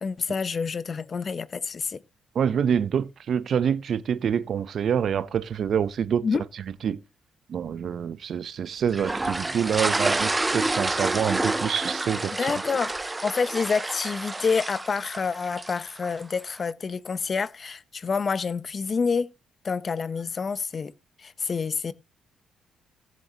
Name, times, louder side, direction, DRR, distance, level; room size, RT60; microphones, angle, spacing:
voice 1, 0.0-2.0 6.2-6.4 12.4-19.3 19.6-20.9 21.2-21.9, left 5 dB, 40° left, 0.7 m, -28 dB
voice 2, 2.3-6.2 6.8-7.0 7.5-12.6, right 8 dB, 60° right, 0.6 m, -26 dB
sound 1, 8.9-16.2, right 2 dB, 15° right, 0.5 m, -29 dB
17.5 x 7.6 x 2.8 m
cardioid pair, 90°, 0 cm